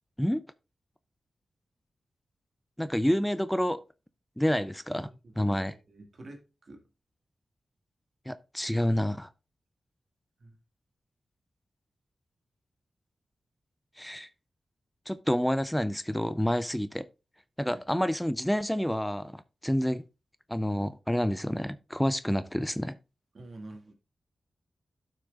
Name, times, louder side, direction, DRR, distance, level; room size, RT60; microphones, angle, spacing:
voice 1, 2.8-3.8 4.4-5.1 5.4-5.7 8.3-9.3 14.0-14.3 15.1-17.1 17.6-20.0 20.5-23.0, equal, 5° left, 0.5 m, -28 dB
voice 2, 5.2-6.9 10.4-10.6 17.7-17.8 23.3-23.9, right 2 dB, 60° right, 2.0 m, -47 dB
11.5 x 6.0 x 2.5 m
cardioid pair, 40°, 0 cm